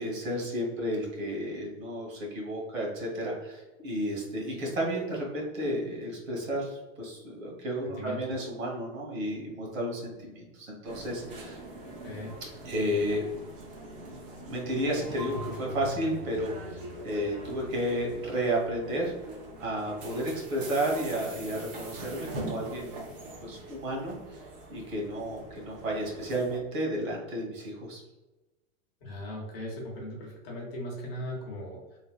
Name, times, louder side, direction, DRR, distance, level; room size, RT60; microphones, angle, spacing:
voice 1, 0.0-11.6 12.6-13.2 13.8-19.1 19.6-23.0 23.4-24.4 24.7-28.0, right 1 dB, 75° right, -2 dB, 1.4 m, -32 dB
voice 2, 7.8-8.5 12.0-12.3 29.0-32.0, left 1 dB, 45° left, -3 dB, 1.0 m, -39 dB
sound 1, 10.8-26.6, right 1 dB, 40° right, 0.6 m, -42 dB
3.3 x 2.3 x 2.3 m, 1.1 s
supercardioid pair, 175°, 40 cm